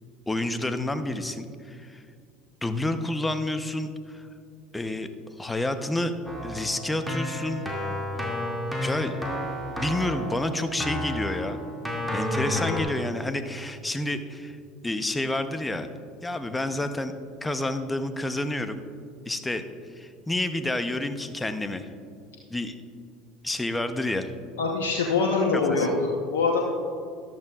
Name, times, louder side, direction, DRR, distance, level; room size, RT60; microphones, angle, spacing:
voice 1, 0.3-2.0 2.6-4.2 4.7-5.1 5.4-6.1 6.4-7.6 8.8-9.2 9.8-11.6 12.1-14.6 14.8-15.9 16.2-17.1 17.4-18.8 19.3-19.6 20.0-21.9 22.5-22.7 23.4-24.3 25.5-25.9, left 1 dB, 10° left, 9 dB, 0.8 m, -29 dB
Keyboard (musical), 6.2-12.8, left 1 dB, 5° right, 2.3 m, -31 dB
voice 2, 24.6-26.6, left 4 dB, 80° left, -1 dB, 1.0 m, -24 dB
13.5 x 12.0 x 2.4 m, 2.3 s
hypercardioid pair, 80°, 0 cm